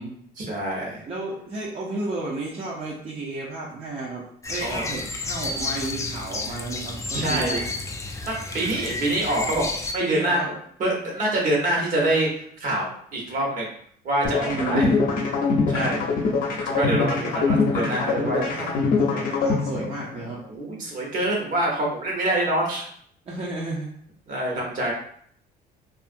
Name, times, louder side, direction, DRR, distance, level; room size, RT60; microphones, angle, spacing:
voice 1, 0.4-1.0 4.6-4.9 7.1-7.6 8.3-9.7 9.9-10.4 10.8-12.3 12.6-13.7 14.0-14.9 15.7-16.1 16.6-18.7 20.5-22.9 24.3-24.9, right 1 dB, 55° right, -1 dB, 1.0 m, -25 dB
voice 2, 1.1-8.2 10.0-10.5 14.5-15.0 15.7-15.9 18.2-18.7 19.0-20.4 23.3-23.9, right 2 dB, 35° right, -4 dB, 0.6 m, -33 dB
sound 1, 4.4-9.9, left 2 dB, 20° left, 0.3 m, -31 dB
sound 2, 14.2-20.3, left 4 dB, 55° left, 0.6 m, -23 dB
2.7 x 2.4 x 2.5 m, 0.63 s
cardioid pair, 110°, 17 cm